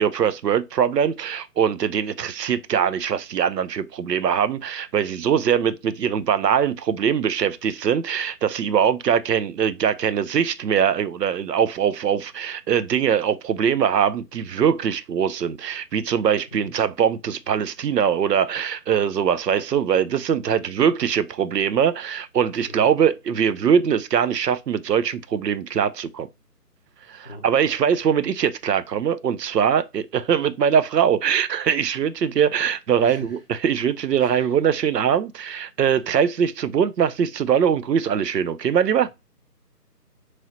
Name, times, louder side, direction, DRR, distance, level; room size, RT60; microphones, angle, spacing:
voice 1, 0.0-26.3 27.1-39.1, right 8 dB, 85° right, 0.6 m, -22 dB
voice 2, 33.0-33.4 34.2-34.6 39.0-39.1, equal, 35° left, 0.6 m, -41 dB
3.1 x 2.8 x 3.9 m
figure-of-eight pair, 170°, 48 cm